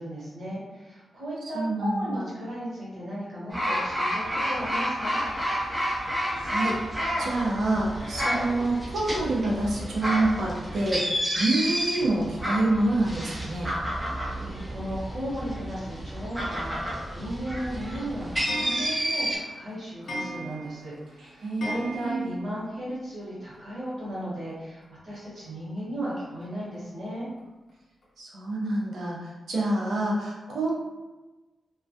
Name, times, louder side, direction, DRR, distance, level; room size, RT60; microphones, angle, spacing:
voice 1, 0.0-5.2 13.8-27.3, equal, 55° right, -8 dB, 1.0 m, -36 dB
voice 2, 1.5-2.3 6.3-6.8 7.2-13.7 21.2-22.3 28.2-30.7, right 2 dB, 80° right, -4 dB, 0.6 m, -27 dB
sound 1, 3.5-19.4, equal, 15° right, 0.5 m, -30 dB
Clock, 17.5-22.6 22.9-23.0 23.2-23.3 23.5-23.6 24.8-24.9 25.5-25.6 26.1-26.2 26.7-26.8 27.4-27.5 28.0-28.1, equal, 50° left, 0.6 m, -38 dB
2.2 x 2.2 x 2.6 m, 1.2 s
wide cardioid pair, 175°, 0 cm